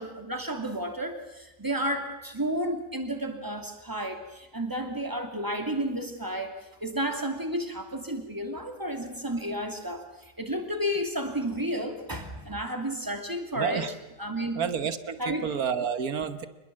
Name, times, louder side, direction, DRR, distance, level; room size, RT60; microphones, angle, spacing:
voice 1, 0.0-13.9 14.2-14.6 15.2-15.5, right 1 dB, 10° right, 4 dB, 2.8 m, -32 dB
voice 2, 13.6-13.9 14.5-16.5, right 7 dB, 60° right, 11 dB, 1.7 m, -30 dB
25.0 x 21.5 x 7.6 m, 0.97 s
omnidirectional pair, 1.8 m